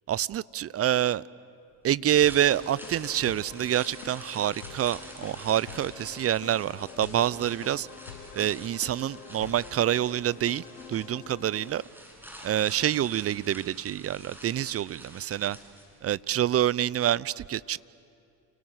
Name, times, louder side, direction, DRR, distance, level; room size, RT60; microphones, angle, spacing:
voice 1, 0.1-1.2 1.8-7.9 8.3-11.8 12.4-15.6 16.0-17.8, right 11 dB, 30° right, 21 dB, 0.5 m, -27 dB
sound 1, 2.2-11.8, left 7 dB, 90° left, 1.2 m, -46 dB
sound 2, 2.2-16.2 16.5-16.6, equal, 5° right, 7.9 m, -48 dB
29.0 x 22.0 x 8.0 m, 2.5 s
hypercardioid pair, 60°, 47 cm